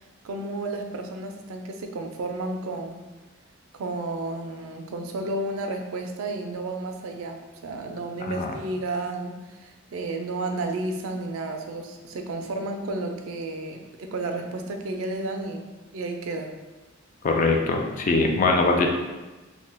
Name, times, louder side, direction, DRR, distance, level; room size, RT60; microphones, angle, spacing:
voice 1, 0.2-3.0 3.7-15.6 15.9-16.6, right 2 dB, 85° right, 4 dB, 0.4 m, -32 dB
voice 2, 17.2-18.9, left 3 dB, 40° left, 2 dB, 0.4 m, -22 dB
2.7 x 2.2 x 3.3 m, 1.2 s
head